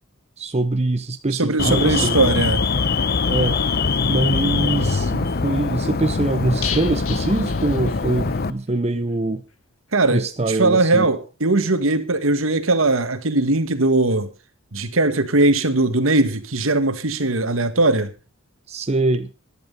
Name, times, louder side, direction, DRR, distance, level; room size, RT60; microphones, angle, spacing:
voice 1, 0.4-2.2 3.3-3.6 4.1-9.4 10.1-11.1 18.7-19.3, right 2 dB, 30° right, 0.8 m, -23 dB
voice 2, 1.4-2.6 9.9-14.3 14.7-18.1, right 2 dB, 70° right, 1.7 m, -19 dB
Alarm, 1.6-8.5, left 4 dB, 50° left, 0.8 m, -22 dB
sound 1, 6.6-8.4 8.7-8.8 9.1-9.2, left 8 dB, 80° left, 1.9 m, -33 dB
15.0 x 10.5 x 5.3 m
head